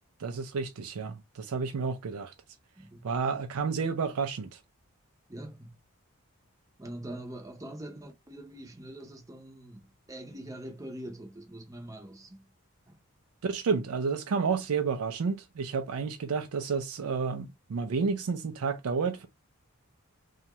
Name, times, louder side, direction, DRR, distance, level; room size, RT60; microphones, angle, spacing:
voice 1, 0.2-2.3 3.0-4.6 13.4-19.3, right 5 dB, 80° right, 0.4 m, -30 dB
voice 2, 5.3-5.8 6.8-12.5 12.9-13.0, right 1 dB, 15° right, 0.6 m, -43 dB
2.7 x 2.3 x 2.9 m
head